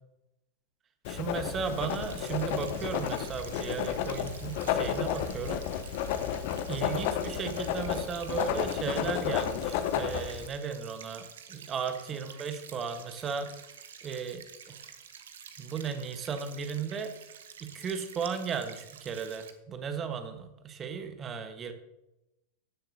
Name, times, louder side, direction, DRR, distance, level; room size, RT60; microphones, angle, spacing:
Writing, 1.0-10.5, left 9 dB, 50° left, 0.8 m, -32 dB
voice 1, 1.1-5.9 6.7-11.2 11.5-13.5 14.0-14.8 15.6-17.1 17.6-21.7, right 6 dB, 25° right, 8 dB, 1.3 m, -35 dB
sound 1, 1.6-19.5, right 8 dB, 60° right, 1.1 m, -49 dB
15.0 x 10.5 x 2.7 m, 0.92 s
figure-of-eight pair, 90°, 0 cm